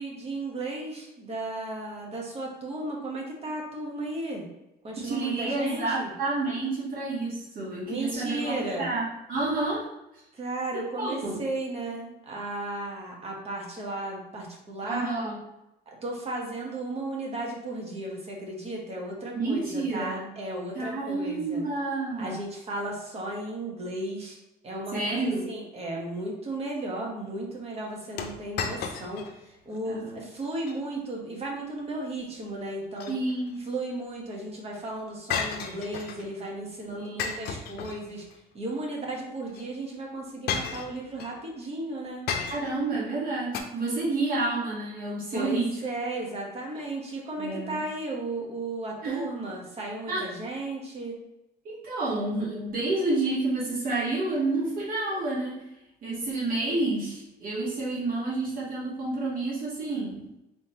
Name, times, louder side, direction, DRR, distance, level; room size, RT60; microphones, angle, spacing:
voice 1, 0.0-4.5 4.8-6.1 7.9-8.9 10.3-15.1 15.9-21.6 22.2-24.4 24.6-33.2 33.7-38.3 38.5-42.2 45.3-51.2, right 2 dB, 35° right, -1 dB, 1.2 m, -35 dB
voice 2, 5.0-9.0 9.3-9.9 10.7-11.4 14.9-15.4 19.3-20.2 20.7-22.4 24.9-25.4 29.9-30.2 33.1-33.6 36.9-37.4 42.5-45.8 47.4-47.8 49.0-49.2 50.1-50.2 51.6-55.7 56.0-60.3, right 2 dB, 55° right, -6 dB, 1.5 m, -29 dB
sound 1, 28.2-29.4 29.7-29.8 30.4-30.8 32.7-33.6 35.3-36.3 37.2-38.4 39.5-39.6 40.5-41.3 42.3-42.9 43.5-43.6, left 6 dB, 70° left, 0.5 m, -33 dB
4.0 x 3.4 x 2.9 m, 0.91 s
cardioid pair, 110°, 17 cm